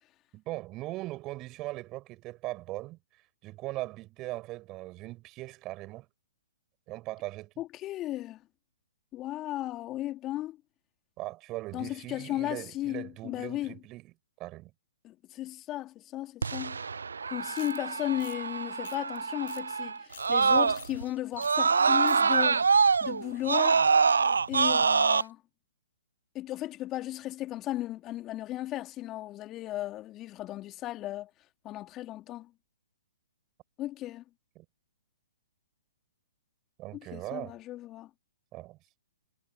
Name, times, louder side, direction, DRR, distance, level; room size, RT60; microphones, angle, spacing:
voice 1, 0.3-3.0 3.4-6.1 6.9-7.5 11.2-14.1 14.4-14.7 34.6-34.7 36.8-37.6 38.5-38.8, right 18 dB, 25° right, 6.2 m, -39 dB
voice 2, 7.6-8.4 9.1-10.6 11.7-13.8 15.0-16.8 17.3-22.7 23.0-23.8 24.5-25.4 26.3-31.3 31.6-32.5 33.8-34.2 36.9-38.1, left 14 dB, 25° left, 2.7 m, -35 dB
Screaming, 16.4-21.0 21.4-25.2, right 5 dB, 75° right, 0.3 m, -25 dB
sound 1, 17.5-17.8 18.2-18.4 18.8-19.2 19.5-19.6 19.9-20.3 20.8-20.9 21.4-21.6 21.8-22.2, left 12 dB, 50° left, 6.6 m, -49 dB
figure-of-eight pair, 125°, 0 cm